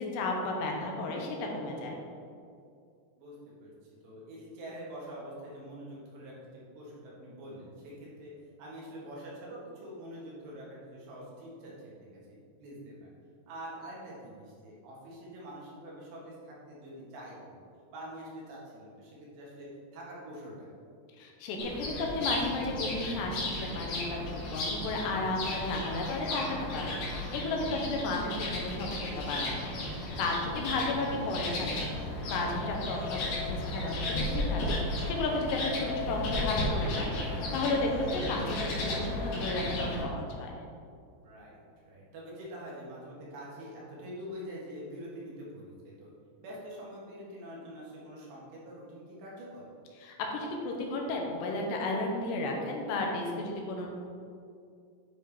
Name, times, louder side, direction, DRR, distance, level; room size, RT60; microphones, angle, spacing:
voice 1, 0.0-2.0 21.2-29.5 29.8-31.8 32.3-40.5 50.0-53.9, left 2 dB, 85° left, 0 dB, 3.0 m, -33 dB
voice 2, 3.2-3.7 4.0-8.3 8.6-11.7 12.0-13.1 13.5-17.6 17.9-20.9 24.8-25.3 41.2-46.1 46.4-49.7, equal, 80° right, -5 dB, 3.8 m, -45 dB
sound 1, 21.6-40.0, left 1 dB, 65° left, 3.0 m, -34 dB
9.0 x 5.4 x 3.5 m, 2.4 s
omnidirectional pair, 4.9 m